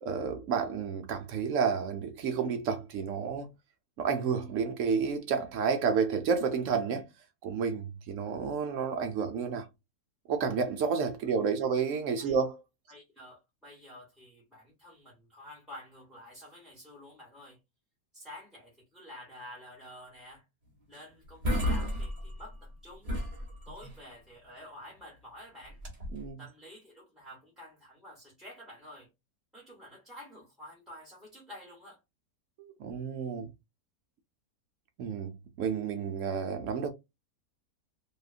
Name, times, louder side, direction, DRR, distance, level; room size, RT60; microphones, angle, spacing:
voice 1, 0.0-3.5 4.0-7.0 7.4-9.7 10.3-12.6 26.1-26.4 32.6-33.5 35.0-36.9, right 6 dB, 75° right, 0.7 m, -30 dB
voice 2, 12.9-17.6 18.1-20.4 20.9-23.1 23.7-25.8 26.4-29.1 29.5-32.0, left 1 dB, ahead, 0.8 m, -50 dB
sound 1, 20.9-21.0 21.3-22.7 23.0-24.0 25.7-26.3, equal, 35° right, 0.6 m, -33 dB
2.7 x 2.3 x 2.4 m
omnidirectional pair, 1.8 m